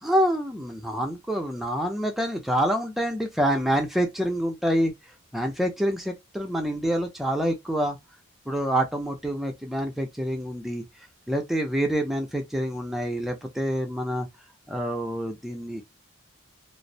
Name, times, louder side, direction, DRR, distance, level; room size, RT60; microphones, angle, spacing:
voice 1, 0.0-4.9 5.3-8.0 8.5-10.8 11.3-14.3 14.7-15.8, equal, ahead, 0.4 m, -27 dB
2.4 x 2.0 x 2.6 m
head